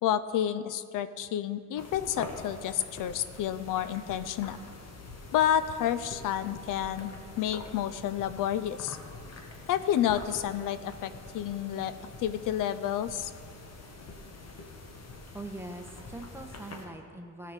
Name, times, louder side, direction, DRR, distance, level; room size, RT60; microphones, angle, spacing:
voice 1, 0.0-4.6 5.3-9.0 9.7-11.9 12.2-13.3, left 10 dB, 80° left, 13 dB, 0.5 m, -30 dB
sound 1, 1.8-16.9, left 3 dB, 55° left, 1.5 m, -45 dB
voice 2, 15.3-17.5, right 2 dB, 10° right, 4 dB, 1.0 m, -42 dB
14.5 x 5.7 x 6.5 m, 2.2 s
cardioid pair, 95°, 32 cm